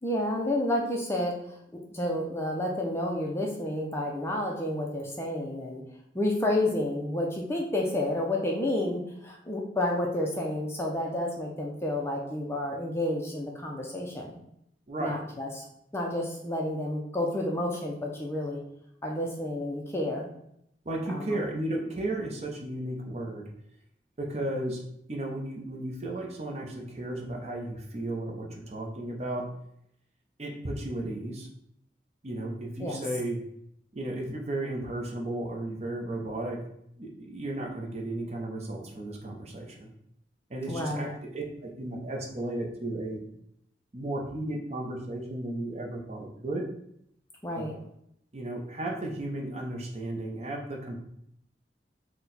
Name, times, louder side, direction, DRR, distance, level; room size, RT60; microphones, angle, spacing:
voice 1, 0.0-1.6 1.9-5.8 6.1-14.4 15.0-15.6 15.9-18.6 19.0-20.3 21.1-21.4 32.8-33.0 40.7-41.1 47.4-47.8, left 1 dB, 15° left, -1 dB, 0.4 m, -30 dB
voice 2, 20.9-23.4 24.2-24.8 25.1-29.4 30.4-31.5 32.2-33.4 33.9-36.6 37.0-39.9 40.5-43.2 43.9-46.6 47.6-47.7 48.3-51.0, right 1 dB, 35° right, 0 dB, 0.7 m, -34 dB
4.3 x 2.2 x 4.0 m, 0.74 s
head